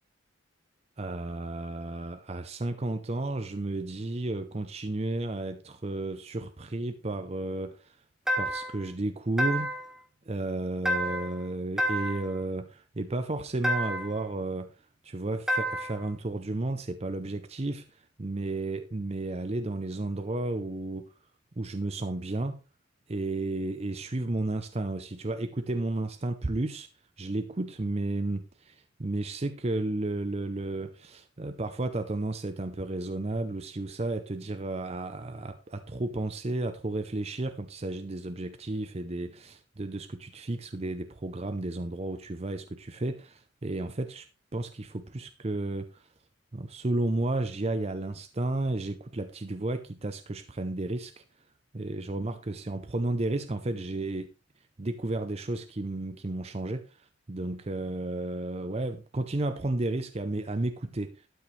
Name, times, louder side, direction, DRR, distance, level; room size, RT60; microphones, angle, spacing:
voice 1, 1.0-8.0 8.4-9.8 10.3-14.7 15.0-21.1 21.6-22.6 23.1-26.9 27.2-44.3 44.5-46.1 46.5-51.2 51.7-54.3 54.8-61.2, right 2 dB, 35° right, 0.6 m, -33 dB
sound 1, 8.3-8.8 9.4-9.9 10.9-11.4 11.8-12.3 13.6-14.2 15.5-16.0, equal, 5° right, 1.8 m, -29 dB
12.5 x 8.8 x 3.3 m
head